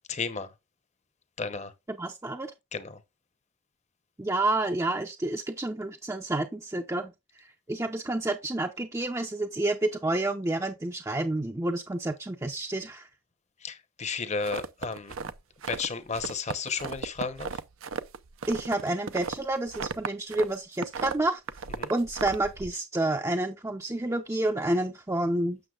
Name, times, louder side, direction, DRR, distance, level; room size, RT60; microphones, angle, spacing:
voice 1, 0.1-0.5 1.4-1.7 2.7-3.0 13.6-15.1 15.7-17.5 21.8-21.9, left 5 dB, 35° left, 0.9 m, -33 dB
voice 2, 1.9-2.5 4.2-13.1 18.5-21.4 21.9-25.6, right 2 dB, 15° right, 0.5 m, -29 dB
sound 1, 14.4-15.9 16.1-20.5 20.7-22.7, right 5 dB, 85° right, 0.7 m, -36 dB
7.9 x 6.7 x 2.4 m
head